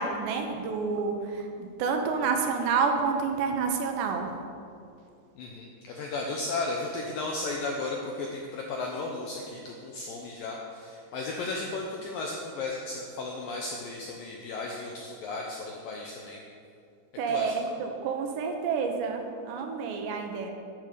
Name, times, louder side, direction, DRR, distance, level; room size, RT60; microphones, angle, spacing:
voice 1, 0.0-4.3 17.2-20.5, right 5 dB, 80° right, 4 dB, 3.2 m, -29 dB
voice 2, 5.4-16.4 17.3-17.6, left 3 dB, 80° left, 0 dB, 2.0 m, -35 dB
10.0 x 9.7 x 6.8 m, 2.5 s
omnidirectional pair, 5.2 m